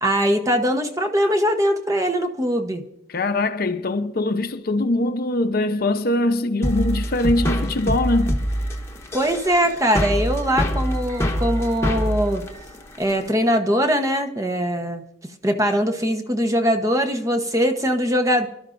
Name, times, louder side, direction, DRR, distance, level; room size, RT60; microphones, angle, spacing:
voice 1, 0.0-2.8 9.1-12.4 13.0-15.0 15.4-18.5, equal, 15° right, 0.9 m, -21 dB
voice 2, 3.1-8.4, left 2 dB, 55° left, 0.7 m, -22 dB
sound 1, 6.6-13.3, equal, 15° left, 1.2 m, -25 dB
26.0 x 12.0 x 2.6 m
head